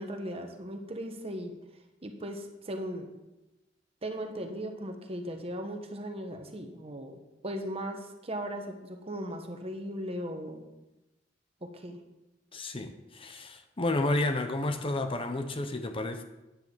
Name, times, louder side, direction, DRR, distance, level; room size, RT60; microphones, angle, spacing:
voice 1, 0.0-1.6 2.0-3.1 4.0-7.2 7.4-10.6 11.6-12.0, equal, 35° right, 1.3 m, -37 dB
voice 2, 12.5-16.2, left 2 dB, 30° left, 0.8 m, -31 dB
9.8 x 6.8 x 7.8 m
head